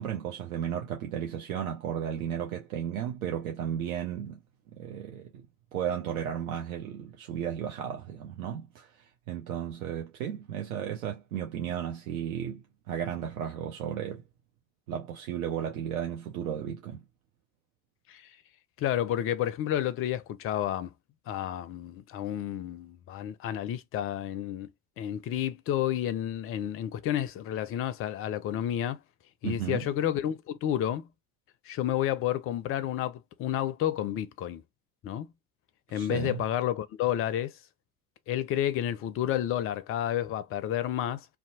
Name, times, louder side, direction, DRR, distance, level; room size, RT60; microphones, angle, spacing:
voice 1, 0.0-4.4 4.7-5.5 5.7-14.2 14.9-17.0 29.4-29.9 35.9-36.4, right 9 dB, 70° right, 0.6 m, -34 dB
voice 2, 18.8-20.9 21.3-24.7 25.0-29.0 29.4-31.1 31.7-34.6 35.0-35.3 35.9-37.5 38.3-41.2, left 11 dB, 30° left, 0.4 m, -30 dB
2.7 x 2.1 x 2.6 m
figure-of-eight pair, 60°, 44 cm